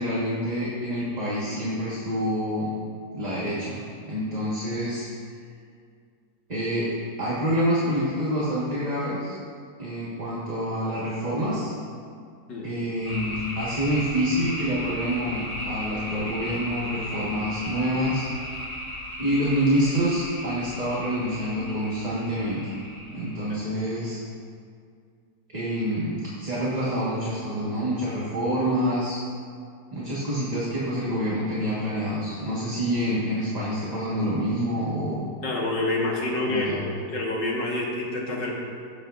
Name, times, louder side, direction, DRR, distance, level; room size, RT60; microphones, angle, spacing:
voice 1, 0.0-2.7 3.1-5.1 6.5-9.3 9.8-11.7 12.6-18.2 19.2-22.7 23.1-24.2 25.5-29.2 29.9-35.2 36.4-36.9, equal, 25° right, -8 dB, 1.6 m, -27 dB
sound 1, 13.0-23.5, equal, 15° left, 1.7 m, -36 dB
voice 2, 35.4-38.5, left 2 dB, 80° left, -3 dB, 2.3 m, -27 dB
17.0 x 7.9 x 2.6 m, 2.2 s
omnidirectional pair, 1.9 m